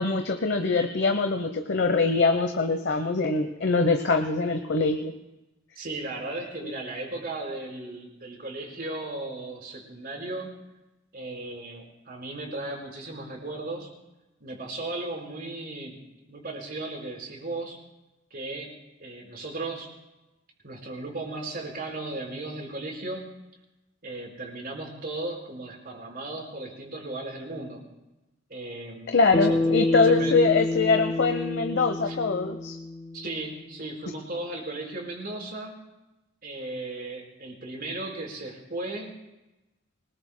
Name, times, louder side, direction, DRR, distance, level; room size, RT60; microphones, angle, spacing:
voice 1, 0.0-5.1 6.6-6.7 29.1-32.8, left 4 dB, 60° left, 6 dB, 0.9 m, -23 dB
voice 2, 5.8-10.6 11.1-13.9 14.4-16.0 16.3-17.8 18.3-19.9 20.6-23.3 24.0-27.8 28.5-29.7 30.0-30.4 32.0-32.2 33.1-35.8 36.4-39.1, right 2 dB, 50° right, 0 dB, 4.7 m, -36 dB
Bass guitar, 29.3-33.8, left 2 dB, 20° left, 0.4 m, -28 dB
25.0 x 20.5 x 2.2 m, 1.0 s
head